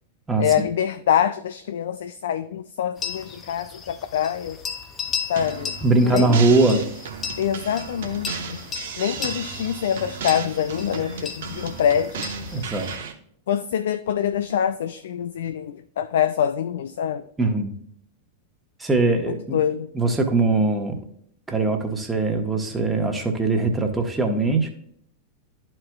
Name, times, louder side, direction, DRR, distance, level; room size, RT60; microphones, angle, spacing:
voice 1, 0.4-4.6 5.3-5.7 6.0-6.8 7.4-8.6 9.0-12.2 13.5-17.2 19.3-19.9, left 9 dB, 60° left, 10 dB, 0.3 m, -25 dB
sound 1, 3.0-13.0, left 6 dB, 25° left, 0.7 m, -36 dB
sound 2, 5.4-13.1, right 6 dB, 60° right, 1.0 m, -35 dB
voice 2, 5.8-6.9 12.5-13.1 17.4-17.7 18.8-19.6 19.9-21.0 21.5-24.7, right 3 dB, 10° right, 3 dB, 1.3 m, -21 dB
13.0 x 4.5 x 2.3 m, 0.67 s
figure-of-eight pair, 90°, 0 cm